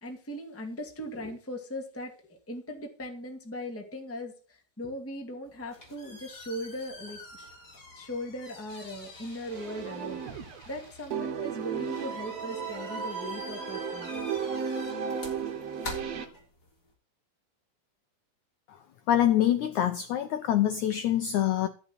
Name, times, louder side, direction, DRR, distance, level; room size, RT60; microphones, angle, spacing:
voice 1, 0.0-7.5 7.9-14.1, equal, 5° left, 3 dB, 1.3 m, -39 dB
sound 1, 5.5-16.9, left 2 dB, 25° left, 3.9 m, -47 dB
sound 2, 9.5-10.8 11.1-16.3, right 6 dB, 55° right, 2.1 m, -34 dB
voice 2, 19.1-21.7, left 11 dB, 75° left, 8 dB, 1.8 m, -25 dB
13.5 x 5.5 x 7.9 m, 0.39 s
omnidirectional pair, 4.2 m